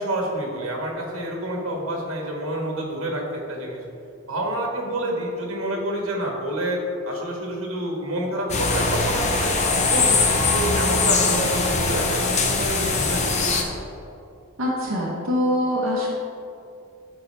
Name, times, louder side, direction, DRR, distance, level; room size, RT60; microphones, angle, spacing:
voice 1, 0.0-3.8 4.2-6.8 7.0-9.5 9.9-13.3, right 1 dB, 85° right, 0 dB, 1.5 m, -28 dB
sound 1, 8.5-13.6, left 3 dB, 35° left, 0.7 m, -21 dB
voice 2, 14.6-16.1, left 1 dB, 65° right, -7 dB, 1.3 m, -23 dB
12.0 x 5.6 x 3.4 m, 2.6 s
head